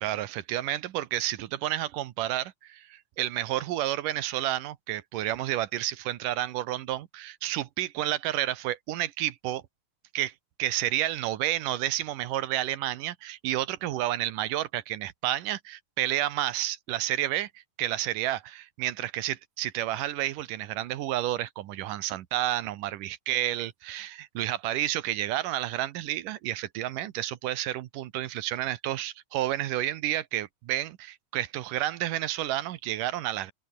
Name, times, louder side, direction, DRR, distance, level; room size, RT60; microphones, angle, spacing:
voice 1, 0.0-9.6 10.1-10.3 10.6-17.5 17.8-33.5, right 14 dB, 75° right, 2.6 m, -30 dB
open air
omnidirectional pair, 3.8 m